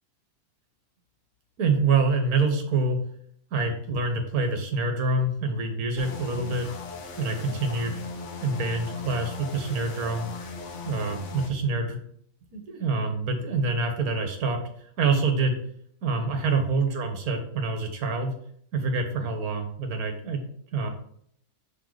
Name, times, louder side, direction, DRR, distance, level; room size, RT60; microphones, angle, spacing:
voice 1, 1.6-3.0 3.5-6.7 7.2-8.0 8.4-10.3 10.8-12.0 12.5-14.6 15.0-15.6 16.0-18.3 18.7-20.4 20.7-20.9, right 3 dB, 85° right, 4 dB, 1.6 m, -26 dB
sound 1, 6.0-11.5, left 4 dB, 60° left, 1.2 m, -38 dB
6.0 x 4.0 x 4.8 m, 0.64 s
omnidirectional pair, 1.5 m